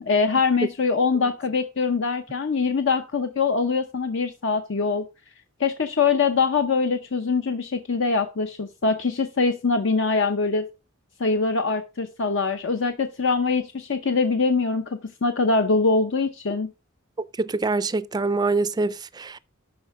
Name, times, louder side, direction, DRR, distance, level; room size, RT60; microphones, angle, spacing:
voice 1, 0.0-5.0 5.6-10.7 11.2-16.7, left 4 dB, 65° left, 0.7 m, -23 dB
voice 2, 17.2-19.4, right 3 dB, 20° right, 0.4 m, -25 dB
11.5 x 4.4 x 4.7 m
head